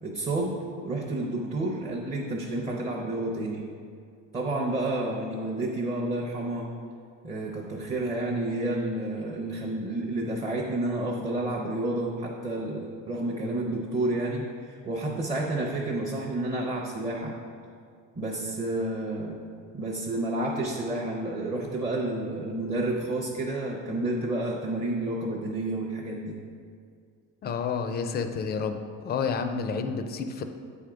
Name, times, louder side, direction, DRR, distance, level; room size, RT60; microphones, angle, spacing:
voice 1, 0.0-3.6 4.3-6.7 7.2-17.3 18.2-19.4 19.7-26.3, right 2 dB, 20° right, -2 dB, 0.6 m, -30 dB
voice 2, 27.4-28.8 29.0-30.4, left 5 dB, 30° left, 7 dB, 0.4 m, -29 dB
8.4 x 3.5 x 4.9 m, 2.2 s
cardioid pair, 150°, 33 cm